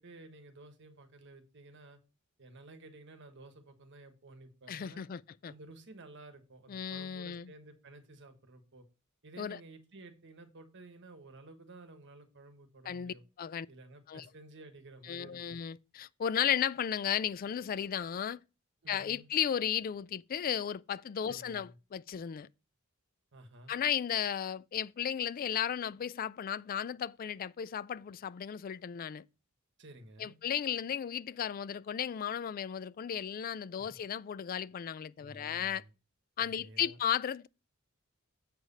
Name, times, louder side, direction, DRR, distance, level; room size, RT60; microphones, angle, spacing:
voice 1, 0.0-2.0 2.4-5.1 5.5-8.9 9.2-13.2 13.7-15.6 18.8-19.3 21.3-21.8 23.3-23.7 29.8-30.4 33.8-33.9 35.2-35.9 36.4-37.0, right 2 dB, 60° right, 1.3 m, -53 dB
voice 2, 4.7-5.5 6.7-7.5 9.4-9.6 12.9-13.7 14.1-14.3 15.0-18.4 18.9-22.5 23.7-29.2 30.2-35.8 36.4-37.5, left 9 dB, 40° left, 0.3 m, -34 dB
7.7 x 4.8 x 5.4 m
head